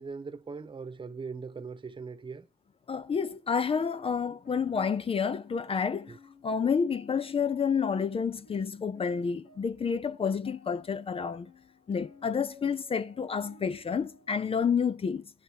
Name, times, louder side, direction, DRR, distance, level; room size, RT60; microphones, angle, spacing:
voice 1, 0.0-2.5 6.1-6.2, right 4 dB, 35° right, 1.1 m, -40 dB
voice 2, 2.9-6.2 6.4-11.5 11.9-15.3, left 6 dB, 40° left, 0.6 m, -29 dB
sound 1, 3.9-14.8, left 4 dB, 90° left, 3.0 m, -56 dB
28.0 x 10.5 x 2.9 m
cardioid pair, 85°, 15 cm